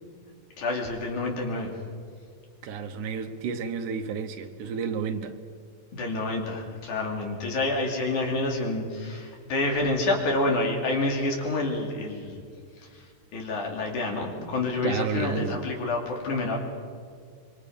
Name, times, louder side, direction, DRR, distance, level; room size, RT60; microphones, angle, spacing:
voice 1, 0.6-1.7 5.9-12.4 12.8-13.1 13.3-16.6, left 2 dB, 75° left, 4.1 m, -28 dB
voice 2, 2.6-5.4 14.8-15.6, right 6 dB, 80° right, 2.6 m, -31 dB
25.5 x 23.0 x 5.3 m
omnidirectional pair, 3.6 m